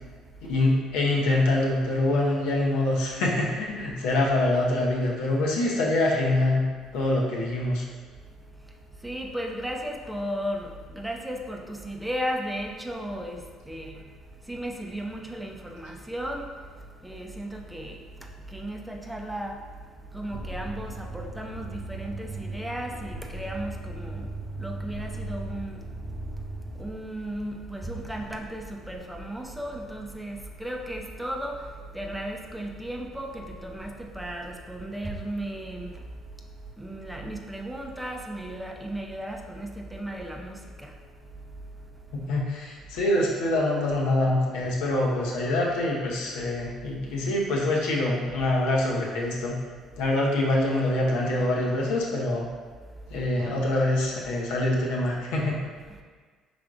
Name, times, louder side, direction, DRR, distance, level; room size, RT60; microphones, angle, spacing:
voice 1, 0.4-6.7 6.9-7.8 42.3-49.6 50.0-52.5 53.1-55.6, left 1 dB, 80° left, -3 dB, 0.7 m, -25 dB
voice 2, 9.0-14.1 14.5-16.5 17.0-19.6 20.1-24.3 24.6-25.8 26.8-31.6 31.9-35.9 36.8-40.9, right 1 dB, 5° right, 1 dB, 0.5 m, -35 dB
sound 1, 20.3-26.9, right 2 dB, 60° right, 0.7 m, -37 dB
4.9 x 3.3 x 2.5 m, 1.5 s
hypercardioid pair, 65°, 0 cm